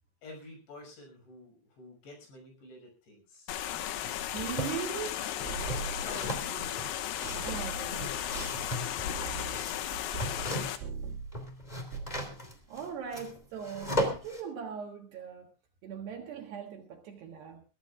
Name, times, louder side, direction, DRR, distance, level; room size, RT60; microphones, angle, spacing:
voice 1, 0.2-3.6 5.6-6.9, left 2 dB, 60° left, 8.2 m, -49 dB
sound 1, 3.5-10.8, left 11 dB, 85° left, 3.8 m, -35 dB
sound 2, 4.0-4.8 5.2-10.9 11.2-14.4, equal, 15° left, 1.3 m, -37 dB
voice 2, 4.3-5.2 7.4-8.1 12.7-15.5 15.8-17.6, right 7 dB, 65° right, 3.1 m, -40 dB
sound 3, 5.5-7.0 7.2-10.5 10.8-11.4 11.7-12.3, right 5 dB, 80° right, 4.1 m, -41 dB
22.5 x 15.5 x 2.4 m
omnidirectional pair, 6.0 m